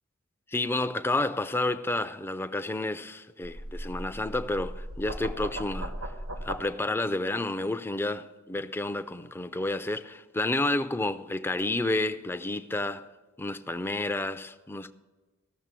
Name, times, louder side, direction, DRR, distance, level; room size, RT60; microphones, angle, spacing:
voice 1, 0.5-5.9 6.4-13.1 13.4-14.9, left 2 dB, 10° left, 0.4 m, -30 dB
sound 1, 3.4-6.6, right 1 dB, 85° right, 1.4 m, -37 dB
14.0 x 6.4 x 7.4 m
head